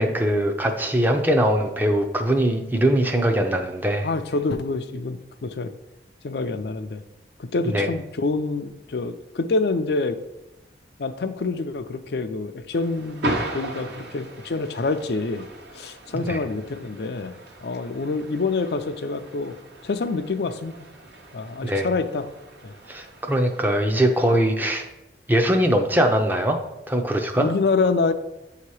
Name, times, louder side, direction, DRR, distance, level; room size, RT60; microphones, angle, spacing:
voice 1, 0.0-4.1 7.7-7.9 16.1-16.4 21.6-21.9 22.9-24.9 25.3-26.6 26.9-27.5, right 1 dB, 10° right, 4 dB, 0.5 m, -21 dB
voice 2, 4.0-5.7 6.2-7.0 7.4-10.2 11.0-15.5 15.7-19.5 19.8-20.9 21.3-22.2 22.6-22.7 27.4-28.1, left 3 dB, 60° left, 10 dB, 0.4 m, -26 dB
sound 1, 12.7-23.7, right 1 dB, 70° right, 1.1 m, -37 dB
8.4 x 2.9 x 4.7 m, 0.94 s
head